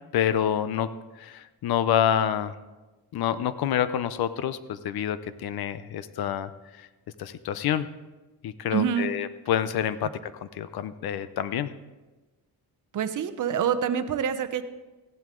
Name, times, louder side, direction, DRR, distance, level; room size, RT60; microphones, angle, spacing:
voice 1, 0.1-0.9 1.2-2.6 3.1-6.5 6.8-6.9 7.2-7.9 8.4-11.7, left 9 dB, 75° left, 14 dB, 0.7 m, -27 dB
voice 2, 8.7-9.1 12.9-14.6, right 8 dB, 55° right, 9 dB, 0.8 m, -26 dB
15.0 x 11.0 x 3.7 m, 1.2 s
wide cardioid pair, 160°, 37 cm